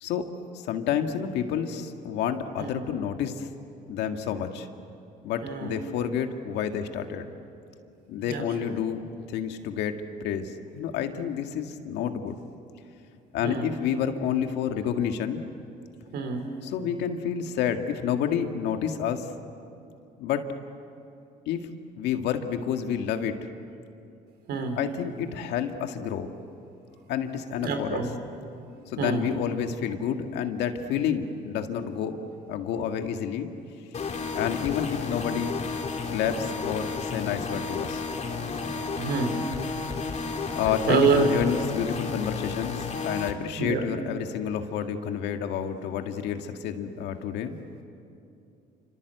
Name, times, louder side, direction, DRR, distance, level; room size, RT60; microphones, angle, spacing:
voice 1, 0.5-3.5 3.9-4.7 5.2-7.3 8.1-12.4 13.3-15.4 16.6-19.3 20.2-20.5 21.5-23.4 24.8-26.3 27.1-28.1 28.9-32.2 32.5-33.5 34.3-35.6 36.1-38.0 40.6-47.6, left 8 dB, 85° left, 6 dB, 1.9 m, -29 dB
voice 2, 16.1-16.4 24.5-24.8 27.6-28.1 29.0-29.2 39.0-39.4 40.9-41.3 43.6-43.8, right 6 dB, 75° right, 5 dB, 4.3 m, -26 dB
sound 1, 33.9-43.3, left 4 dB, 40° left, 3.0 m, -32 dB
28.0 x 26.0 x 8.1 m, 2.6 s
cardioid pair, 95°, 17 cm